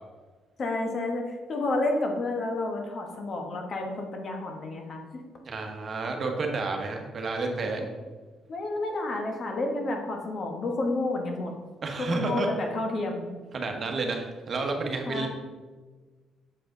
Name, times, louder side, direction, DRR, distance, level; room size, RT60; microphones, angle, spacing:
voice 1, 0.6-5.2 7.8-7.9 8.5-11.5 12.0-13.3 15.1-15.3, left 2 dB, 50° left, 2 dB, 1.3 m, -30 dB
voice 2, 5.4-7.8 11.8-12.5 13.5-15.3, right 3 dB, 45° right, 3 dB, 1.1 m, -30 dB
7.4 x 4.8 x 3.8 m, 1.4 s
cardioid pair, 90°, 0 cm